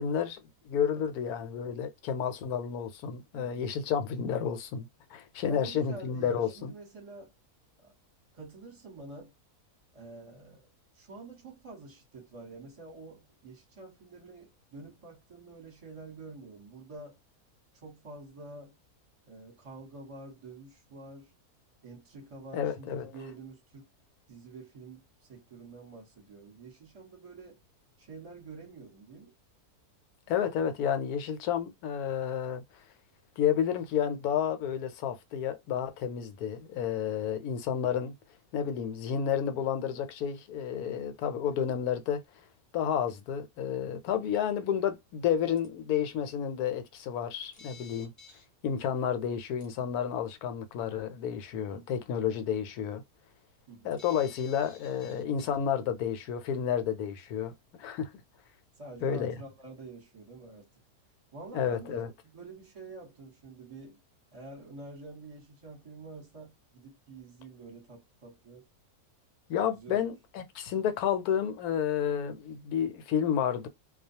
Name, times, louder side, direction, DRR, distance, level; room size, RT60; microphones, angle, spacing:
voice 1, 0.0-6.7 22.5-23.1 30.3-32.6 33.4-38.1 38.5-42.2 42.7-48.1 48.6-53.0 53.8-57.5 57.8-58.1 59.0-59.4 61.5-62.1 69.5-73.7, left 8 dB, 80° left, 1.1 m, -31 dB
voice 2, 3.3-3.7 5.4-7.3 7.8-7.9 8.3-9.4 9.9-10.6 10.9-17.2 17.7-18.7 19.3-21.3 21.8-23.9 24.3-25.0 25.3-27.6 28.0-29.3 51.7-52.0 53.7-54.0 58.8-60.7 61.3-64.0 64.3-68.7 69.8-70.0, right 3 dB, 25° right, 1.0 m, -47 dB
sound 1, 45.6-45.7 47.5-48.4 49.6-49.7 53.9-55.6, left 6 dB, 40° left, 0.8 m, -52 dB
2.3 x 2.2 x 2.7 m
omnidirectional pair, 1.6 m